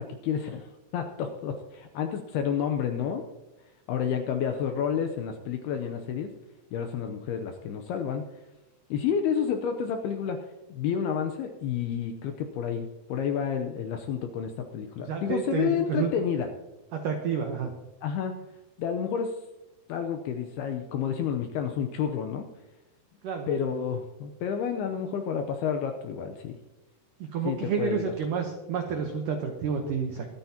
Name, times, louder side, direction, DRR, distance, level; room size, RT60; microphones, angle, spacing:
voice 1, 0.0-3.2 3.9-6.3 6.7-8.2 8.9-10.4 10.7-16.5 18.0-18.3 18.8-19.4 19.9-22.5 23.5-26.6 27.5-28.1, left 7 dB, 80° left, 5 dB, 2.3 m, -30 dB
voice 2, 15.1-16.1 16.9-17.7 23.2-23.5 27.2-30.3, right 6 dB, 85° right, 4 dB, 1.8 m, -30 dB
24.5 x 9.3 x 2.9 m, 1.1 s
omnidirectional pair, 5.4 m